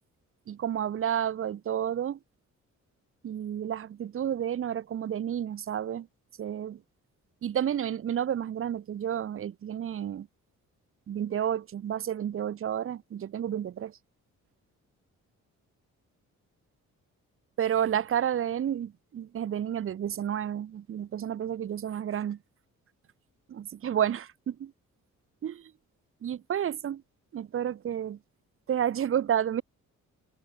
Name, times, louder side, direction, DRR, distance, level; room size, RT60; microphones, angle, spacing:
voice 1, 0.5-2.2 3.2-6.1 6.4-6.8 7.4-10.3 11.1-13.9 17.6-22.4 23.5-24.7 25.4-25.6 26.2-27.0 27.3-28.2 28.7-29.6, right 9 dB, 45° right, 0.7 m, -30 dB
cardioid pair, 95°, 31 cm